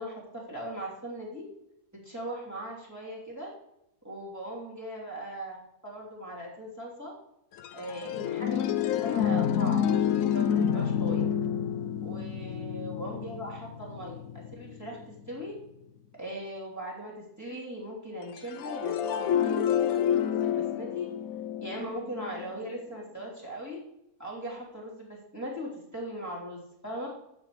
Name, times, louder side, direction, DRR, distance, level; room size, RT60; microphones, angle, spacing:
voice 1, 0.0-1.5 2.0-3.5 4.0-5.6 5.8-7.1 7.7-11.2 12.0-15.0 15.3-15.5 16.2-21.1 21.6-23.8 24.2-27.1, equal, 10° right, -6 dB, 3.0 m, -39 dB
sound 1, 7.6-15.2 18.4-22.5, left 9 dB, 70° left, 0.9 m, -28 dB
16.0 x 6.3 x 3.1 m, 0.81 s
omnidirectional pair, 1.7 m